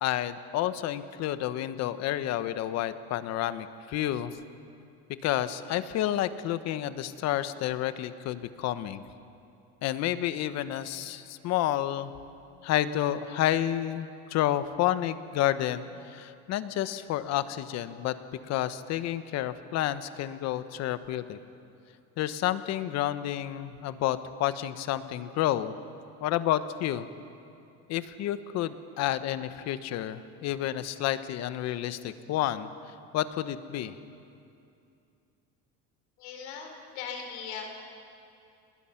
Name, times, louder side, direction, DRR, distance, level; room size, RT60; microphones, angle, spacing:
voice 1, 0.0-4.4 5.2-9.0 9.8-12.1 12.6-18.2 18.5-21.4 22.2-25.8 26.2-27.1 27.9-34.0, left 12 dB, 55° left, 12 dB, 1.1 m, -30 dB
voice 2, 36.2-37.6, left 6 dB, 90° left, 2 dB, 4.2 m, -39 dB
29.0 x 20.0 x 5.9 m, 2.6 s
cardioid pair, 135°, 31 cm